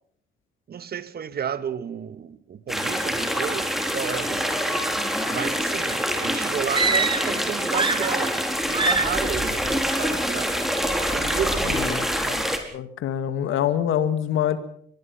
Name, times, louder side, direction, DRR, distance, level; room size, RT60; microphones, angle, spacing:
voice 1, 0.7-4.5 5.3-8.3 8.7-10.5 11.1-12.3, right 8 dB, 50° right, 1.5 m, -32 dB
sound 1, 2.7-12.6, equal, ahead, 4.1 m, -25 dB
sound 2, 6.7-7.4 7.7-8.4 8.7-9.3, right 4 dB, 25° right, 1.3 m, -24 dB
voice 2, 11.7-12.4 12.7-14.6, left 10 dB, 80° left, 2.1 m, -25 dB
23.5 x 20.5 x 5.8 m
cardioid pair, 90°, 20 cm